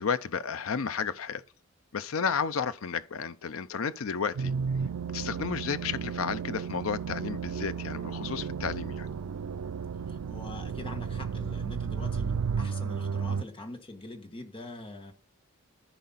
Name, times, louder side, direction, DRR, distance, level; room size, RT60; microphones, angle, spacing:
voice 1, 0.0-1.4 1.9-4.5 5.1-9.1, left 6 dB, 65° left, 0.6 m, -32 dB
sound 1, 4.4-13.4, right 6 dB, 90° right, 0.4 m, -33 dB
voice 2, 10.1-15.1, left 2 dB, 25° left, 1.5 m, -43 dB
14.5 x 5.2 x 4.1 m
head